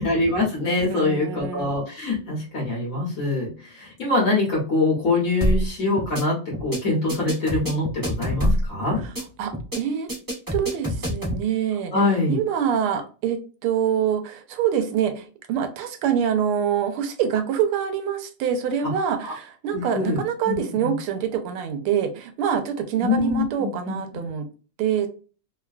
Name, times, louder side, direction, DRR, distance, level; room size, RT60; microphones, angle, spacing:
voice 1, 0.0-9.0 11.9-12.4 19.3-19.4 19.7-20.9 23.0-24.3, left 2 dB, 50° left, -3 dB, 1.2 m, -24 dB
voice 2, 0.8-1.7 9.4-10.1 10.5-11.9 12.3-24.5 24.8-25.1, right 8 dB, 85° right, 7 dB, 1.5 m, -25 dB
sound 1, 5.4-5.7 6.0-6.2 6.5-6.8 7.1-8.7 9.0-9.2 9.5-9.8 10.1-11.4, equal, 20° right, 0.6 m, -25 dB
3.5 x 2.2 x 2.3 m, 0.37 s
omnidirectional pair, 2.4 m